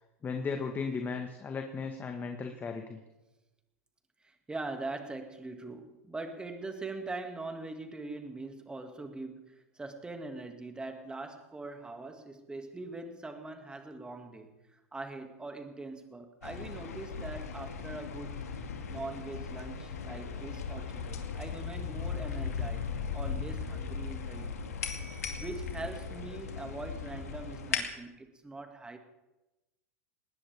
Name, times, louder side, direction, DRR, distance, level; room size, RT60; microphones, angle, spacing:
voice 1, 0.2-3.0, left 5 dB, 25° left, 4 dB, 1.7 m, -36 dB
voice 2, 4.2-14.6 14.9-18.4 18.9-24.8 25.4-29.0, right 3 dB, 10° right, 6 dB, 2.3 m, -42 dB
sound 1, 16.4-27.8, left 6 dB, 80° left, 2.4 m, -38 dB
20.0 x 19.0 x 3.6 m, 1.0 s
hypercardioid pair, 100°, 8 cm